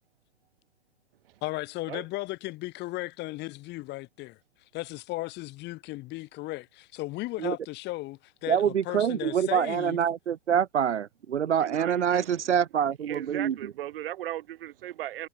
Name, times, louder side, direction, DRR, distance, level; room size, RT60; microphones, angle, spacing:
voice 1, 1.4-4.4 4.7-10.0, left 19 dB, 30° left, 3.2 m, -36 dB
voice 2, 8.5-13.7, right 8 dB, 75° right, 0.7 m, -26 dB
voice 3, 11.6-12.4 13.1-15.3, right 13 dB, 50° right, 3.0 m, -37 dB
figure-of-eight pair, 115°, 35 cm